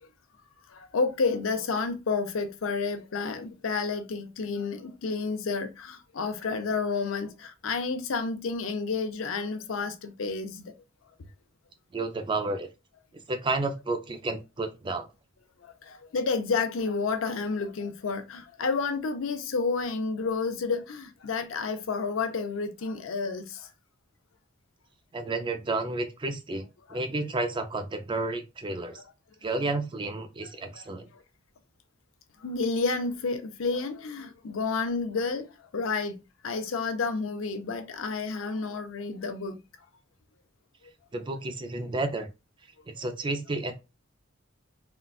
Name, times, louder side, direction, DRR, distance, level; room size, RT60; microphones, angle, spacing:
voice 1, 0.7-10.7 15.6-23.7 26.9-27.0 28.9-29.0 30.7-30.8 31.1-31.2 32.4-39.6 42.9-43.0, left 4 dB, 85° left, 0.5 m, -30 dB
voice 2, 11.9-12.7 13.3-15.1 25.1-26.6 26.9-29.0 29.4-31.1 41.1-42.3 42.9-43.7, right 2 dB, 25° right, 0.4 m, -31 dB
3.8 x 2.2 x 2.3 m
head